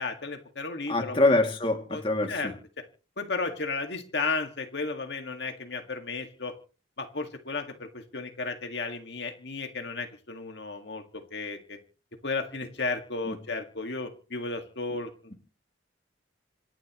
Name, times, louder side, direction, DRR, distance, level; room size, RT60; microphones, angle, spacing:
voice 1, 0.0-1.2 1.9-2.0 2.3-2.5 3.2-6.5 7.0-11.8 12.2-15.1, left 3 dB, 60° left, 4 dB, 1.9 m, -34 dB
voice 2, 0.9-2.5 13.2-13.3, left 2 dB, 30° left, 3 dB, 2.4 m, -25 dB
27.5 x 11.5 x 3.1 m, 0.37 s
head